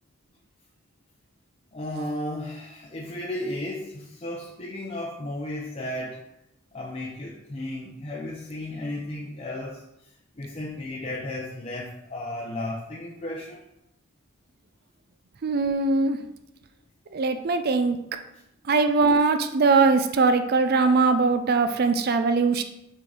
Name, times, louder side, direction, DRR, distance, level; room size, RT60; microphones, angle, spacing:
voice 1, 1.7-6.2 6.7-9.8 10.3-13.6, left 1 dB, 30° left, -3 dB, 0.7 m, -34 dB
voice 2, 15.4-16.2 17.1-18.0 18.7-22.6, right 4 dB, 45° right, 8 dB, 0.4 m, -21 dB
6.3 x 4.5 x 3.9 m, 0.82 s
head